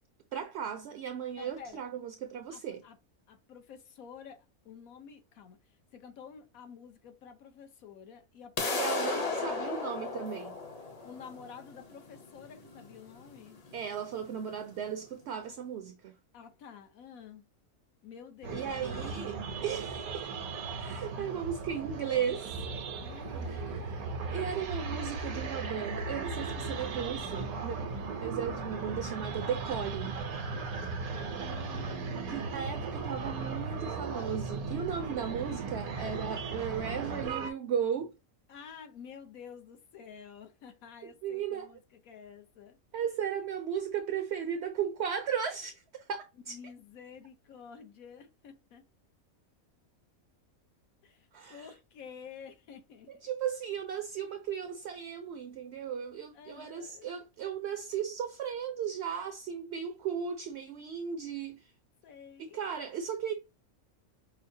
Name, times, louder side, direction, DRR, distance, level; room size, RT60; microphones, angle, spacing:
voice 1, 0.3-2.8 8.7-10.6 13.7-16.2 18.5-20.3 20.8-22.6 23.5-27.8 28.2-30.2 32.3-38.1 41.2-41.7 42.9-46.6 51.3-51.7 53.1-61.7 62.4-63.3, right 8 dB, 65° right, 0.7 m, -36 dB
voice 2, 1.4-1.8 2.5-3.0 3.3-9.6 11.0-13.6 16.3-17.4 18.0-19.3 23.0-23.6 31.4-32.5 38.5-42.8 43.0-43.1 46.5-48.8 51.0-53.1 56.3-57.1 62.0-62.6, left 7 dB, 75° left, 1.2 m, -50 dB
sound 1, 8.6-14.5, left 3 dB, 40° left, 0.6 m, -36 dB
sound 2, 18.4-37.5, right 4 dB, 80° right, 1.2 m, -37 dB
5.4 x 2.1 x 2.6 m
omnidirectional pair, 1.5 m